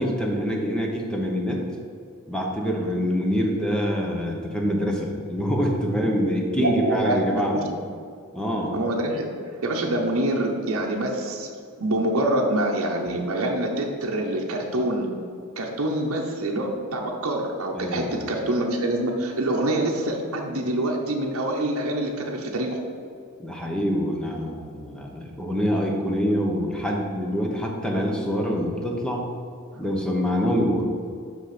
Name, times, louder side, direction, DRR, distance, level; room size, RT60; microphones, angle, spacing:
voice 1, 0.0-1.6 2.3-7.6 8.3-8.7 17.7-18.3 23.4-29.3 29.8-30.8, equal, 5° left, -1 dB, 0.9 m, -25 dB
voice 2, 6.6-7.6 8.7-9.3 9.6-11.5 11.8-15.1 15.6-22.8 29.7-29.8, right 1 dB, 65° right, 0 dB, 0.8 m, -25 dB
5.9 x 5.6 x 5.9 m, 2.3 s
head